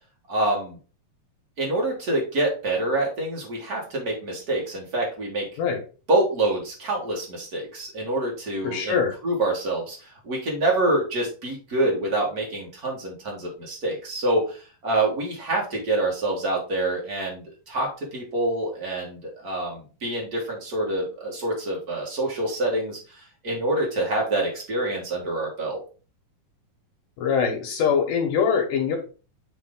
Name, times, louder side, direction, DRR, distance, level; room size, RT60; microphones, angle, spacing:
voice 1, 0.3-0.8 1.6-5.5 6.1-25.8, right 2 dB, 90° right, -2 dB, 0.8 m, -26 dB
voice 2, 8.6-9.1 27.2-29.0, left 6 dB, 70° left, 1 dB, 2.3 m, -23 dB
8.2 x 3.3 x 3.7 m, 0.36 s
omnidirectional pair, 4.2 m